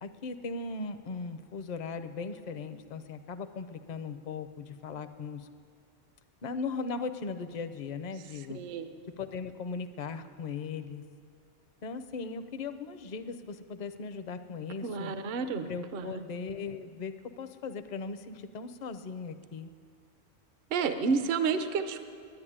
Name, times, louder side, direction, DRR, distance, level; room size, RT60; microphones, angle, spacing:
voice 1, 0.0-5.5 6.4-8.6 9.2-11.0 11.8-15.1 15.6-19.7, left 4 dB, 45° left, 10 dB, 0.6 m, -38 dB
voice 2, 8.5-8.9 14.8-16.2 20.7-22.0, right 5 dB, 55° right, 9 dB, 0.8 m, -30 dB
10.5 x 10.5 x 9.9 m, 2.2 s
omnidirectional pair, 1.2 m